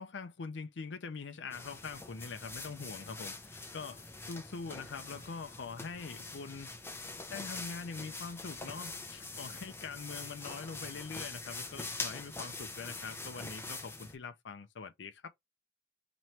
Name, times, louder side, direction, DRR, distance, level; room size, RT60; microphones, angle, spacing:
voice 1, 0.0-6.7 7.3-15.3, left 5 dB, 70° left, 0.5 m, -43 dB
sound 1, 1.5-14.2, left 3 dB, 15° left, 0.6 m, -44 dB
3.0 x 3.0 x 4.2 m
head